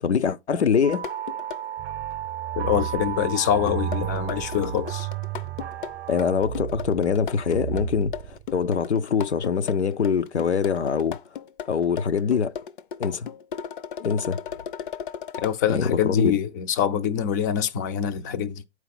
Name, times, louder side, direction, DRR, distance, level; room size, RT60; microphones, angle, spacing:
voice 1, 0.0-1.1 6.1-11.2 11.7-12.5 13.0-13.3 14.0-14.4 15.7-16.3, left 6 dB, 85° left, 0.7 m, -24 dB
sound 1, 0.8-6.4, right 10 dB, 80° right, 0.6 m, -35 dB
sound 2, 0.9-1.6 3.6-15.6, left 8 dB, 50° left, 0.6 m, -36 dB
sound 3, 1.8-8.7, right 12 dB, 30° right, 0.6 m, -34 dB
voice 2, 2.6-5.1 15.4-18.6, left 9 dB, 20° left, 0.4 m, -25 dB
8.2 x 4.8 x 5.9 m
hypercardioid pair, 130°, 33 cm